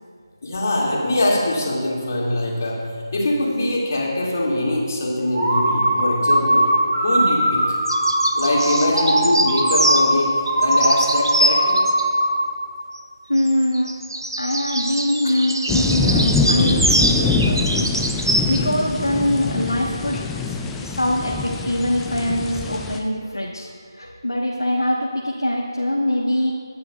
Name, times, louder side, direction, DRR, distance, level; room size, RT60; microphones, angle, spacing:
voice 1, 0.4-6.7 7.0-7.8 8.4-11.8 15.2-15.5, left 1 dB, 40° left, -3 dB, 2.4 m, -23 dB
sound 1, 5.3-12.5, right 1 dB, 20° right, 1.9 m, -20 dB
sound 2, 7.9-10.1 10.5-12.0 13.4-18.6, right 1 dB, 65° right, 1.2 m, -23 dB
voice 2, 13.3-13.9 14.4-20.5 20.8-26.5, left 1 dB, 80° left, -2 dB, 1.3 m, -23 dB
sound 3, 15.7-23.0, left 4 dB, 5° left, 0.3 m, -24 dB
24.0 x 9.4 x 2.4 m, 2.2 s
figure-of-eight pair, 155°, 2 cm